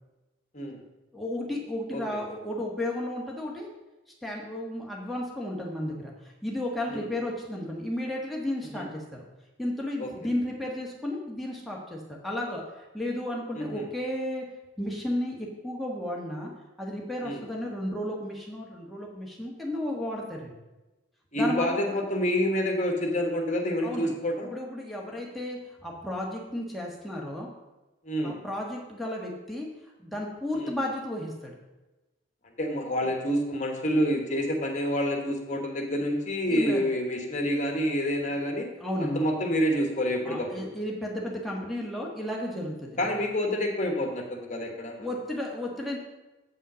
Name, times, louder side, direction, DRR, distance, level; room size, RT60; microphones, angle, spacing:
voice 1, 1.1-3.7 4.2-9.2 9.6-12.6 12.9-14.4 14.8-16.5 16.8-20.5 21.3-21.8 23.8-24.2 24.4-27.5 28.2-29.7 30.0-31.6 36.5-36.8 38.8-39.3 40.2-43.1 45.0-46.0, left 1 dB, ahead, -2 dB, 1.4 m, -33 dB
voice 2, 1.9-2.2 6.9-7.0 8.7-8.8 10.0-10.1 13.5-13.9 17.2-17.4 21.3-24.5 28.0-28.4 30.5-30.7 32.6-38.7 39.0-40.7 43.0-45.1, equal, 35° left, 3 dB, 1.4 m, -28 dB
8.2 x 5.6 x 6.2 m, 1.1 s
head